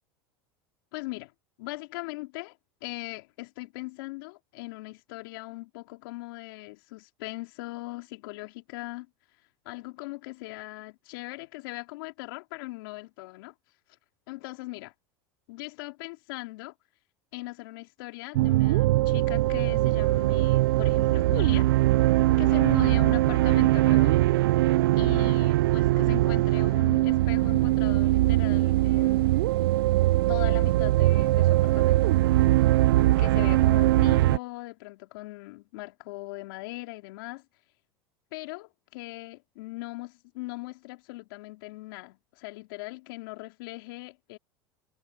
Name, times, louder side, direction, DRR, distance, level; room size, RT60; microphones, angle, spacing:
voice 1, 0.9-1.3 1.6-9.1 9.7-13.5 14.3-14.9 15.5-16.7 17.3-21.7 22.4-24.2 25.0-29.3 30.3-32.1 33.2-37.4 38.3-44.4, left 22 dB, 70° left, 3.5 m, -39 dB
sound 1, 18.3-34.4, right 16 dB, 80° right, 0.4 m, -21 dB
hypercardioid pair, 95°, 12 cm